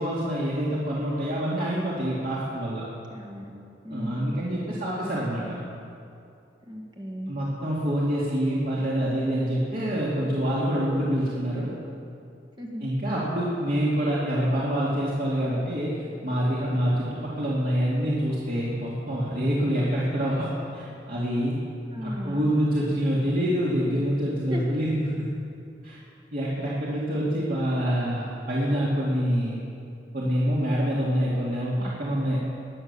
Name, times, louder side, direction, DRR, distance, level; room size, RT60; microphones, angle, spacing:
voice 1, 0.0-2.9 3.9-5.6 7.3-11.7 12.8-15.9 16.2-21.6 22.0-25.3 25.8-26.0 26.3-29.6 30.1-32.4, equal, 55° right, -7 dB, 2.5 m, -26 dB
voice 2, 3.1-3.5 3.8-4.4 6.7-7.3 8.1-8.2 12.6-12.8 21.9-22.5 24.5-24.8, equal, 25° right, 0 dB, 1.9 m, -36 dB
20.0 x 8.8 x 7.1 m, 2.5 s
head